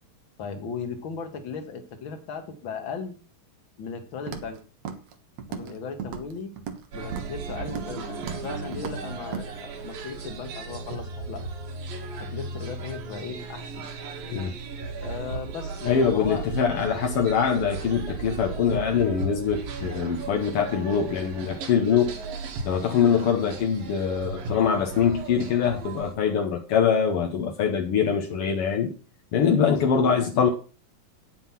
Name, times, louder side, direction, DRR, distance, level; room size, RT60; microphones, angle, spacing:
voice 1, 0.4-3.1 3.8-4.6 5.5-6.5 6.9-11.5 12.2-13.8 15.0-16.4 16.8-17.0 23.0-23.3 29.6-30.2, left 5 dB, 45° left, 1.8 m, -37 dB
Walk footsteps, 4.3-4.6 4.8-5.1 5.4-5.7 6.0-6.8 7.1-7.4 7.7-8.0 8.2-8.5 8.7-9.0 9.3-9.5, right 7 dB, 60° right, 2.1 m, -35 dB
sound 1, 6.9-26.1, right 4 dB, 80° right, 3.7 m, -36 dB
voice 2, 15.8-22.1 22.6-28.9 29.3-30.5, left 7 dB, 70° left, 1.4 m, -23 dB
9.3 x 7.7 x 5.9 m
omnidirectional pair, 4.0 m